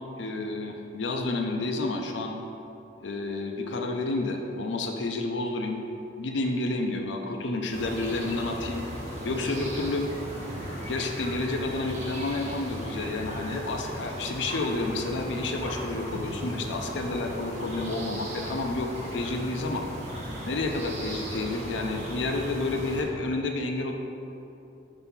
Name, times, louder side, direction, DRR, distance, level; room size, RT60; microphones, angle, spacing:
voice 1, 0.2-2.4 3.0-5.8 6.2-8.8 9.2-10.1 10.9-19.9 20.5-23.9, left 2 dB, 80° left, 3 dB, 0.6 m, -30 dB
sound 1, 7.7-23.0, equal, 40° right, 1.1 m, -36 dB
5.7 x 4.0 x 5.6 m, 2.8 s
head